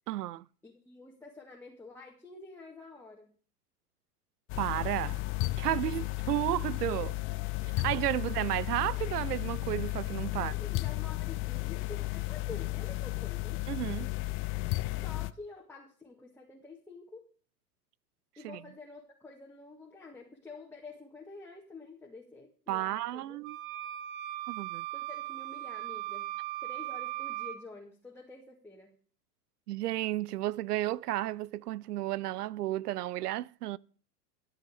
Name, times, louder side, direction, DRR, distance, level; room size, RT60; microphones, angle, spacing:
voice 1, 0.1-0.4 4.6-5.2 5.6-7.1 7.8-10.5 13.7-14.1 18.4-18.6 22.7-23.6 24.5-24.9 29.7-33.8, right 15 dB, 75° right, 0.6 m, -32 dB
voice 2, 0.6-3.3 10.4-13.6 15.0-17.2 18.4-23.4 24.9-26.3 26.6-29.0, left 3 dB, 5° left, 1.8 m, -49 dB
sound 1, 4.5-15.3, left 20 dB, 30° left, 0.5 m, -34 dB
sound 2, 23.4-27.6, right 15 dB, 60° right, 1.5 m, -38 dB
13.0 x 7.9 x 4.9 m
hypercardioid pair, 110°, 47 cm